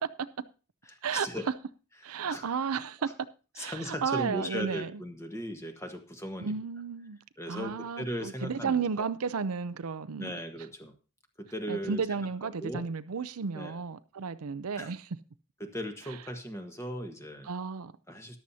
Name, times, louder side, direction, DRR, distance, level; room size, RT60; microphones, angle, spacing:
voice 1, 0.8-1.5 2.3-2.4 3.5-6.6 7.4-9.1 10.2-10.9 11.4-12.2 12.6-12.8 13.5-13.8 14.8-14.9 15.6-17.5 18.1-18.4, equal, 10° left, 1.3 m, -37 dB
voice 2, 2.0-3.1 3.6-4.9 6.4-7.2 7.5-10.3 11.7-15.0 17.5-17.9, right 6 dB, 70° right, 0.6 m, -33 dB
13.5 x 11.5 x 2.8 m
head